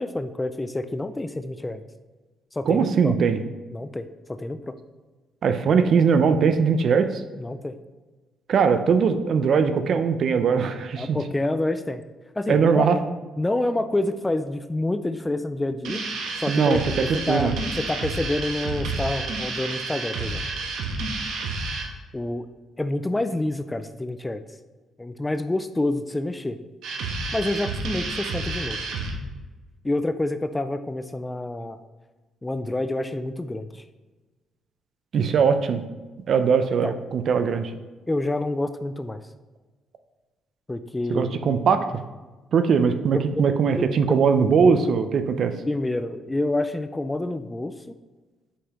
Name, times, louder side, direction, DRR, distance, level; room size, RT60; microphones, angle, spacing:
voice 1, 0.0-1.8 2.5-3.1 3.7-4.8 7.4-7.7 11.0-12.0 12.4-13.0 13.4-16.0 16.4-16.8 17.3-20.4 22.1-22.5 22.8-24.4 25.0-26.6 27.3-28.8 29.8-31.8 32.4-33.8 36.8-36.9 38.1-39.2 40.7-41.3 43.1-43.4 43.7-44.2 45.7-47.7, left 2 dB, 10° left, 10 dB, 0.3 m, -27 dB
voice 2, 2.7-3.4 5.4-7.2 8.5-11.2 12.5-13.0 16.5-17.5 35.1-35.8 36.3-37.7 41.1-41.9 42.5-45.6, right 6 dB, 50° right, 9 dB, 0.5 m, -20 dB
sound 1, 15.8-21.9 26.8-29.1, right 3 dB, 80° right, 1.1 m, -30 dB
8.3 x 5.4 x 3.0 m, 1.2 s
cardioid pair, 130°, 0 cm